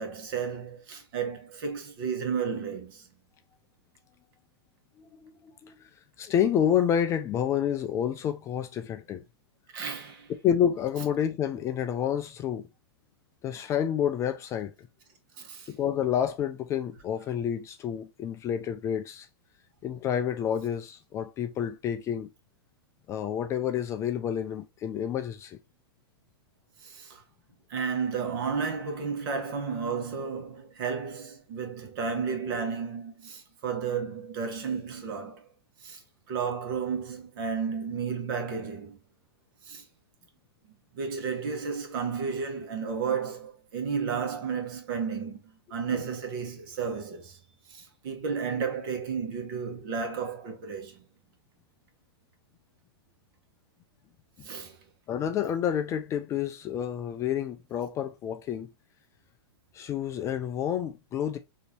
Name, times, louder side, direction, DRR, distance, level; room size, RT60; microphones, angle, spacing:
voice 1, 0.0-3.1 9.7-10.3 15.4-15.7 26.8-27.2 27.7-35.4 35.8-36.0 36.3-39.0 39.6-39.8 40.9-47.4 47.7-51.0 54.4-54.8, right 6 dB, 55° right, 1.4 m, -32 dB
voice 2, 5.0-5.9 6.2-9.2 10.4-12.6 13.4-14.9 15.7-19.3 19.8-22.3 23.1-25.6 45.9-46.0 54.4-54.5 55.1-58.7 59.7-61.4, left 9 dB, 20° left, 0.3 m, -29 dB
3.9 x 2.8 x 2.8 m
hypercardioid pair, 130°, 14 cm